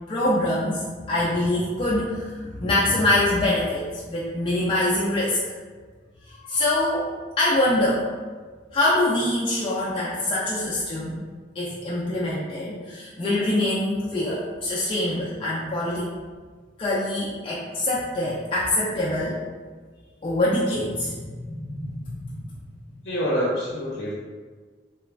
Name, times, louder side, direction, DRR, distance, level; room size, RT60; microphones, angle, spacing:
voice 1, 0.1-5.4 6.3-7.1 7.4-8.0 8.7-11.2 11.5-16.1 16.8-19.4 20.2-22.8, left 1 dB, 30° left, -7 dB, 0.3 m, -24 dB
voice 2, 23.0-24.1, equal, 75° left, -6 dB, 0.6 m, -26 dB
3.0 x 2.2 x 2.4 m, 1.5 s
head